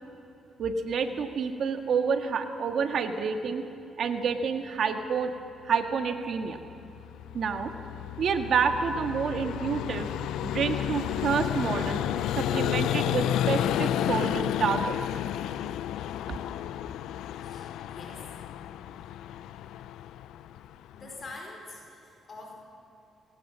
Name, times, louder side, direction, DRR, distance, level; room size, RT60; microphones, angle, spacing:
voice 1, 0.6-3.6 4.0-5.3 5.6-6.6 7.3-7.7 8.2-10.1 10.4-12.0 12.4-15.0, right 6 dB, 60° right, 6 dB, 1.7 m, -28 dB
Vehicle, 6.6-21.3, left 11 dB, 85° left, 0.5 m, -31 dB
voice 2, 17.4-18.3 19.0-19.5 20.9-22.5, left 3 dB, 45° left, 0 dB, 5.1 m, -46 dB
23.0 x 18.0 x 7.5 m, 2.7 s
cardioid pair, 90°, 0 cm